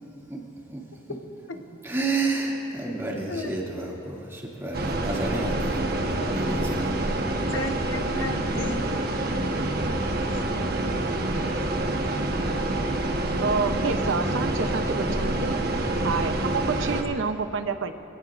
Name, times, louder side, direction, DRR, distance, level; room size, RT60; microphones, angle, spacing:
voice 1, 1.8-5.9 6.2-6.9, right 3 dB, 15° right, -4 dB, 2.4 m, -30 dB
sound 1, 4.7-17.0, right 1 dB, 50° right, 1.2 m, -27 dB
voice 2, 7.5-8.9 10.3-10.5, left 2 dB, 85° left, 5 dB, 1.1 m, -34 dB
voice 3, 13.4-15.6 16.0-17.9, right 4 dB, 85° right, 9 dB, 0.7 m, -28 dB
25.5 x 17.5 x 2.6 m, 2.8 s
head